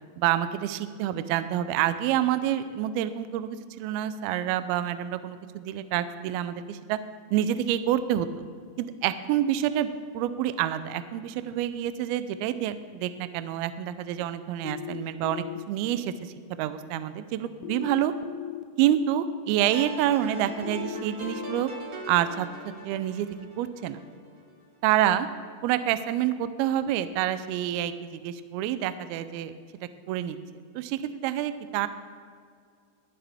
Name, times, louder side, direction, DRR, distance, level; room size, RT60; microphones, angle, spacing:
voice 1, 0.2-7.0 7.3-8.3 8.8-9.9 10.1-18.1 18.8-21.7 22.1-22.5 22.8-23.3 23.6-24.0 24.8-25.3 25.6-29.5 30.1-30.4 30.8-31.9, right 11 dB, 85° right, 12 dB, 2.2 m, -27 dB
sound 1, 14.6-15.6 17.6-18.6 20.6-21.6, left 13 dB, 85° left, 2.6 m, -37 dB
sound 2, 19.6-24.7, right 2 dB, 55° right, 1.1 m, -41 dB
21.0 x 7.5 x 3.5 m, 2.1 s
omnidirectional pair, 5.0 m